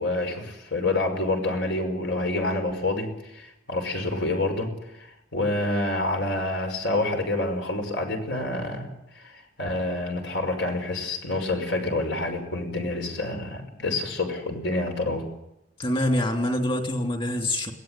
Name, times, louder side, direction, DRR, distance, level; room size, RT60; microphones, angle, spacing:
voice 1, 0.0-15.3, left 2 dB, 70° left, 4 dB, 5.5 m, -28 dB
voice 2, 15.8-17.7, left 1 dB, 30° left, 4 dB, 3.0 m, -25 dB
22.0 x 17.5 x 9.1 m, 0.87 s
head